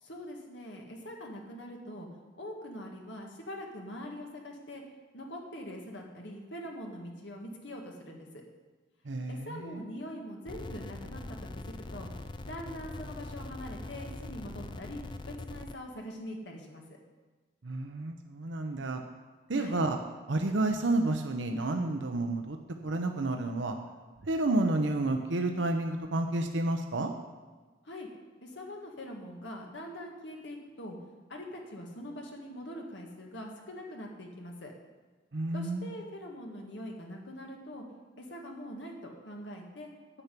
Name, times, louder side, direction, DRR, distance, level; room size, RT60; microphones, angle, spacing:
voice 1, 0.0-2.1 2.4-4.8 5.1-8.4 9.3-11.2 11.6-12.1 12.4-16.8 19.5-19.8 27.8-28.1 28.4-31.0 31.3-34.7 35.5-37.8 38.2-39.9, equal, 70° left, 0 dB, 1.9 m, -43 dB
voice 2, 9.0-9.8 17.6-19.0 19.5-20.0 20.3-22.6 22.8-23.8 24.2-27.1 35.3-35.9, right 2 dB, 80° right, 4 dB, 0.8 m, -30 dB
sound 1, 10.5-15.8, left 2 dB, 25° left, 0.4 m, -42 dB
10.0 x 5.9 x 8.4 m, 1.3 s
head